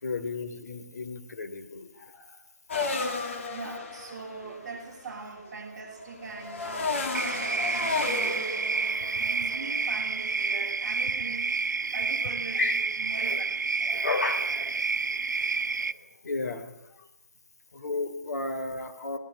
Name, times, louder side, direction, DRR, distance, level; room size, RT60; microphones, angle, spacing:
voice 1, 0.0-2.4 9.1-9.3 12.5-12.8 13.3-13.4 13.8-14.8 15.4-15.6 15.9-17.1 17.7-19.2, left 3 dB, 60° left, 8 dB, 3.3 m, -34 dB
sound 1, 2.7-10.4, left 3 dB, 45° left, 2.7 m, -34 dB
voice 2, 3.5-8.6 9.2-13.5, right 4 dB, 15° right, -6 dB, 6.8 m, -41 dB
sound 2, 7.1-15.9, right 4 dB, 75° right, 1.1 m, -29 dB
21.5 x 20.0 x 7.5 m, 0.84 s
hypercardioid pair, 170°, 10 cm